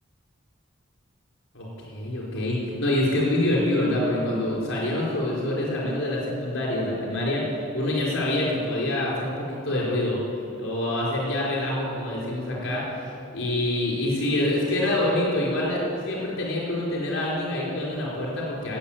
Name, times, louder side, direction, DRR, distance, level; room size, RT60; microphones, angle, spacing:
voice 1, 1.5-10.2 10.6-13.0 13.3-18.8, left 1 dB, 85° left, -4 dB, 4.7 m, -26 dB
18.5 x 8.3 x 8.9 m, 2.5 s
head